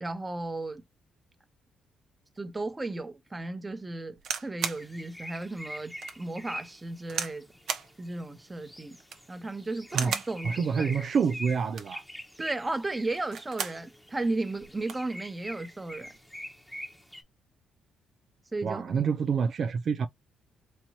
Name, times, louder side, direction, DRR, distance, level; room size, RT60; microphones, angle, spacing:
voice 1, 0.0-0.8 2.4-4.2 4.4-7.5 8.0-9.0 9.3-10.9 12.4-16.1 18.5-19.0, right 2 dB, 20° right, 1.0 m, -34 dB
sound 1, 4.2-4.9 5.4-5.5 6.0-6.2 7.1-7.4 7.7-7.9 8.9-9.3 9.9-10.4 11.6-12.0 13.1-13.8 14.2-14.3 14.6-15.1 15.9-16.2, right 7 dB, 75° right, 0.9 m, -35 dB
sound 2, 4.7-17.2, equal, ahead, 1.0 m, -45 dB
voice 2, 10.4-12.0 18.6-20.1, right 6 dB, 55° right, 0.3 m, -27 dB
4.3 x 3.0 x 2.8 m
cardioid pair, 90°, 0 cm